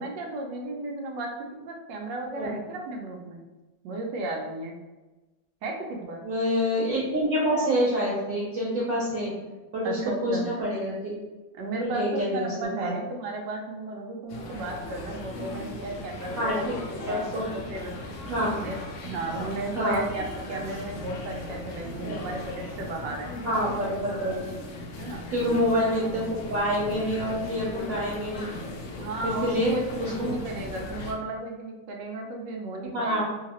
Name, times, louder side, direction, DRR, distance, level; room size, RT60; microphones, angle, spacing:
voice 1, 0.0-1.3 1.6-3.4 3.8-4.8 5.6-6.2 9.8-10.5 11.5-17.9 18.6-23.3 25.0-25.3 29.0-33.2, right 2 dB, 90° right, 1 dB, 1.3 m, -34 dB
voice 2, 6.2-9.3 9.7-11.2 11.8-12.5 12.8-12.9 16.4-16.7 17.0-17.4 18.3-18.7 19.7-20.0 22.0-22.1 23.4-24.4 25.3-28.5 29.2-29.7 30.0-30.3 32.9-33.2, equal, 60° right, -5 dB, 1.1 m, -27 dB
sound 1, 14.3-31.1, left 2 dB, 75° left, 0.7 m, -38 dB
3.2 x 2.8 x 2.9 m, 1.1 s
omnidirectional pair, 1.9 m